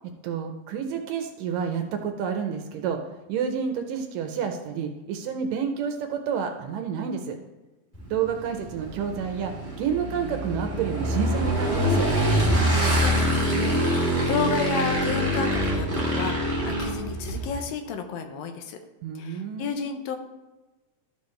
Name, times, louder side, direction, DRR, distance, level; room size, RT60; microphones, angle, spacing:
voice 1, 0.2-3.0 3.3-7.4 8.1-12.1 19.0-19.8, right 7 dB, 75° right, 5 dB, 2.1 m, -29 dB
Motorcycle / Engine, 7.9-17.6, equal, 5° left, 2.5 m, -25 dB
voice 2, 12.6-18.8 19.2-20.2, left 6 dB, 80° left, 6 dB, 2.4 m, -32 dB
13.0 x 6.6 x 3.2 m, 1.1 s
omnidirectional pair, 4.2 m